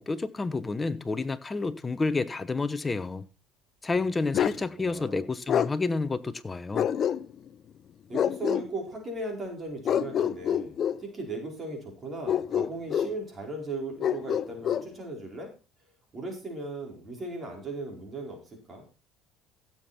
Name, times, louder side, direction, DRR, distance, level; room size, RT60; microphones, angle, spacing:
voice 1, 0.0-3.3 3.8-6.9, left 3 dB, 20° left, 1.0 m, -30 dB
Bark, 4.3-4.6 5.5-5.7 6.7-7.5 8.1-8.7 9.8-11.0 12.3-13.2 14.0-14.9, left 9 dB, 45° left, 0.6 m, -26 dB
voice 2, 4.4-5.2 8.1-15.5 16.1-18.8, right 2 dB, 30° right, 4.7 m, -37 dB
16.0 x 7.4 x 4.3 m
supercardioid pair, 100°, 0 cm